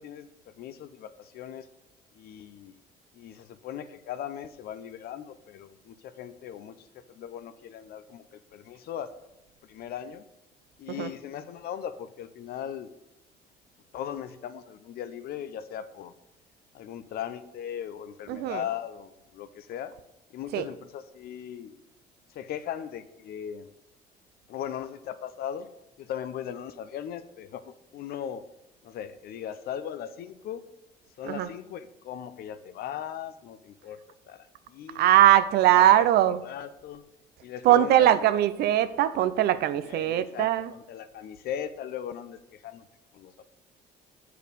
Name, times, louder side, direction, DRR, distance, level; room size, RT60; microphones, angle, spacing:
voice 1, 0.0-1.7 2.1-2.8 3.1-9.1 9.6-10.2 10.8-12.9 13.9-16.1 16.7-19.9 20.3-21.8 22.3-23.7 24.5-25.7 26.0-28.4 28.8-30.6 31.2-35.2 35.6-37.0 37.4-38.1 39.8-42.9 43.1-43.4, left 9 dB, 65° left, 0.6 m, -38 dB
voice 2, 18.3-18.6 20.5-20.6 31.2-31.5 35.0-36.4 37.6-40.7, right 12 dB, 70° right, 0.5 m, -21 dB
8.2 x 4.7 x 5.1 m
cardioid pair, 110°, 17 cm